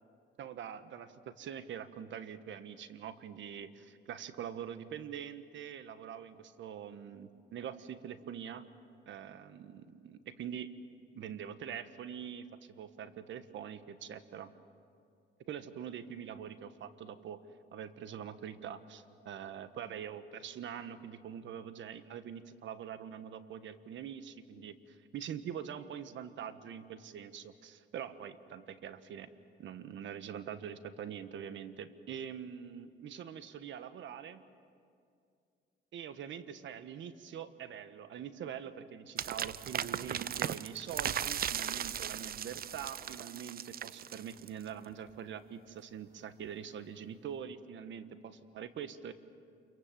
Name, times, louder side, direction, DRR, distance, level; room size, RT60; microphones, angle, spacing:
voice 1, 0.4-8.6 9.1-10.7 11.1-14.5 15.5-17.4 17.7-29.3 29.6-34.4 35.9-48.1 48.5-49.1, right 8 dB, 70° right, 11 dB, 1.3 m, -44 dB
sound 1, 39.2-44.7, right 9 dB, 50° right, 0.6 m, -37 dB
28.0 x 23.5 x 7.6 m, 2.3 s
cardioid pair, 90°, 20 cm